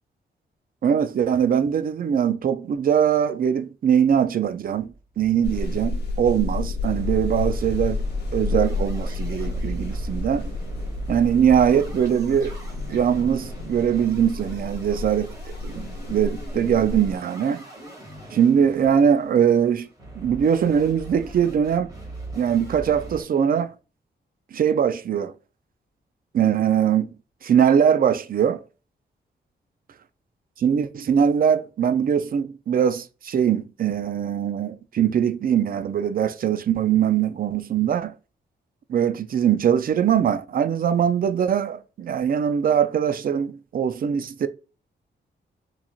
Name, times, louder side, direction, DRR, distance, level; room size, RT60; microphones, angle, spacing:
voice 1, 0.8-4.9 5.2-8.0 8.3-10.5 11.1-12.5 12.9-15.3 15.6-17.6 18.3-19.9 20.2-21.9 22.3-23.7 24.5-25.3 26.3-27.1 27.4-28.6 30.6-38.1 38.9-44.5, right 8 dB, 50° right, 0.4 m, -21 dB
sound 1, 4.9-5.7 6.0-6.1 6.3-6.4 6.8-23.2, right 2 dB, 20° right, 2.0 m, -39 dB
sound 2, 5.4-17.2, left 3 dB, 65° left, 0.9 m, -30 dB
3.9 x 3.0 x 2.4 m
cardioid pair, 100°, 18 cm